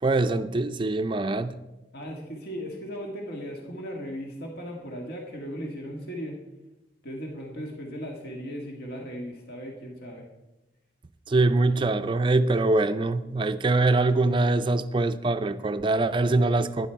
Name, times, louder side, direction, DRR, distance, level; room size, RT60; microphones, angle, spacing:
voice 1, 0.0-1.5 11.3-16.9, right 2 dB, 30° right, 0.4 m, -23 dB
voice 2, 1.9-6.4 7.0-10.3, equal, 60° left, 1.8 m, -37 dB
11.5 x 10.5 x 4.6 m
head